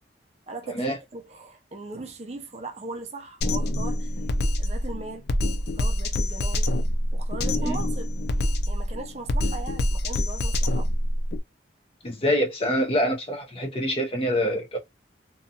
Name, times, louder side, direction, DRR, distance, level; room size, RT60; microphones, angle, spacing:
voice 1, 0.5-5.3 5.6-6.7 7.1-10.9, right 3 dB, 35° right, 0.5 m, -39 dB
Drum kit, 3.4-11.4, left 1 dB, 65° left, 0.4 m, -26 dB
voice 2, 12.0-14.8, equal, 30° left, 0.7 m, -25 dB
2.7 x 2.2 x 2.7 m
head